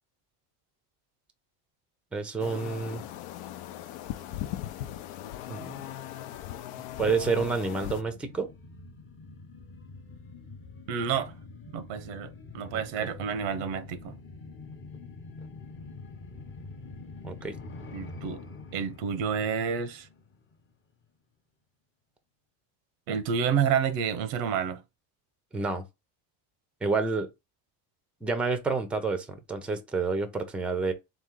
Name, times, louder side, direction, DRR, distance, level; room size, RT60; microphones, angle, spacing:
voice 1, 2.1-3.0 5.5-5.8 7.0-8.5 13.0-13.1 17.2-17.6 25.5-25.8 26.8-27.3 28.2-30.9, right 4 dB, 5° right, 0.5 m, -29 dB
sound 1, 2.4-8.0, left 12 dB, 75° left, 0.7 m, -38 dB
sound 2, 7.6-20.7 21.0-21.1, left 3 dB, 25° left, 0.8 m, -46 dB
voice 2, 10.9-11.3 11.7-14.2 17.9-18.4 18.7-20.1 23.1-24.8, right 7 dB, 90° right, 0.9 m, -29 dB
3.8 x 3.2 x 3.7 m
cardioid pair, 130°, 49 cm